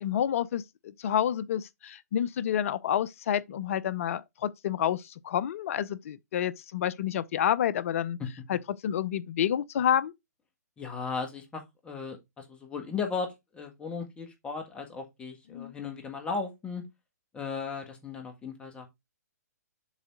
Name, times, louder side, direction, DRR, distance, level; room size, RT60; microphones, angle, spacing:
voice 1, 0.0-8.2 8.5-10.1 15.5-15.7, left 10 dB, 55° left, 0.6 m, -29 dB
voice 2, 10.8-16.8 17.3-18.9, left 5 dB, 10° left, 1.6 m, -36 dB
7.2 x 3.9 x 3.7 m
hypercardioid pair, 135°, 9 cm